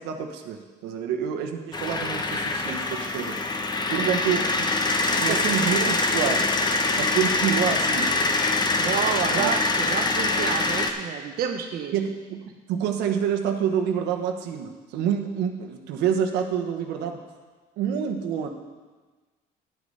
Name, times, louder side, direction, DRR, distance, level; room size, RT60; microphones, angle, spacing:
voice 1, 0.0-3.4 3.9-4.7 5.2-6.4 7.0-8.1 9.3-9.5 11.9-17.2 17.8-18.5, right 8 dB, 90° right, 3 dB, 1.2 m, -27 dB
sound 1, 1.7-10.9, left 3 dB, 25° left, 0.9 m, -24 dB
voice 2, 5.1-6.0 6.2-6.4 8.8-11.9, right 8 dB, 60° right, 4 dB, 0.9 m, -30 dB
10.5 x 8.4 x 5.5 m, 1.3 s
cardioid pair, 110°, 17 cm